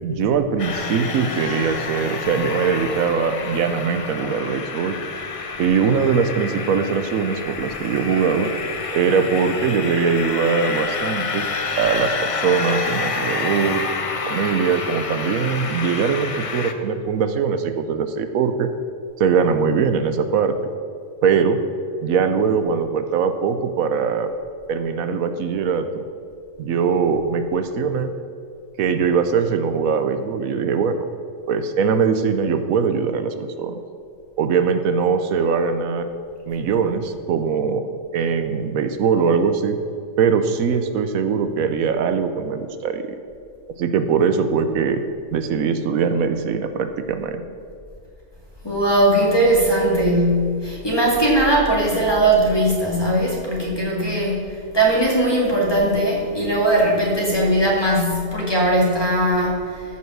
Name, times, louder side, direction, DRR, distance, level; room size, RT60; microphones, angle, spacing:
voice 1, 0.0-5.0 5.6-8.5 8.9-11.5 11.8-13.9 14.2-18.7 19.2-20.6 21.2-21.6 22.0-24.3 24.7-26.0 26.6-28.1 28.8-31.0 31.5-33.8 34.4-36.1 36.5-37.8 38.1-39.8 40.2-43.2 43.8-45.0 45.3-47.4, right 6 dB, 90° right, 9 dB, 1.2 m, -21 dB
sound 1, 0.6-16.7, left 4 dB, 40° left, 0.4 m, -28 dB
voice 2, 48.6-59.8, right 1 dB, 20° left, -3 dB, 2.2 m, -19 dB
14.0 x 5.7 x 6.1 m, 2.3 s
omnidirectional pair, 1.4 m